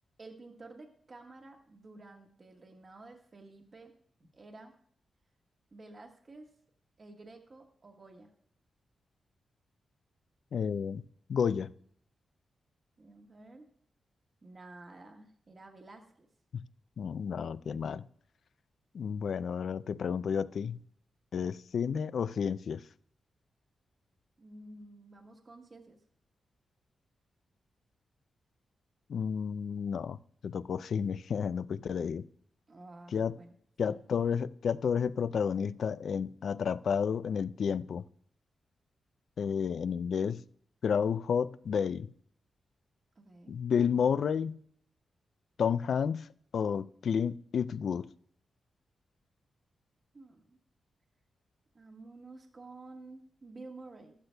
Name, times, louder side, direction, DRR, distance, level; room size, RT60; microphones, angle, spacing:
voice 1, 0.2-3.9 4.2-4.7 5.7-6.5 7.0-8.3 13.0-13.7 14.4-16.3 24.4-26.0 32.7-34.0 43.1-43.6 50.1-50.6 51.7-54.1, right 2 dB, 40° right, 1.3 m, -51 dB
voice 2, 10.5-11.0 11.3-11.7 16.5-16.6 17.0-18.1 18.9-20.8 21.3-22.8 29.1-30.2 30.4-32.3 33.1-33.3 33.8-38.0 39.4-40.4 40.8-42.1 43.5-44.6 45.6-46.3 46.5-48.1, left 7 dB, 70° left, 0.3 m, -31 dB
14.0 x 11.5 x 2.2 m
wide cardioid pair, 105°, 0 cm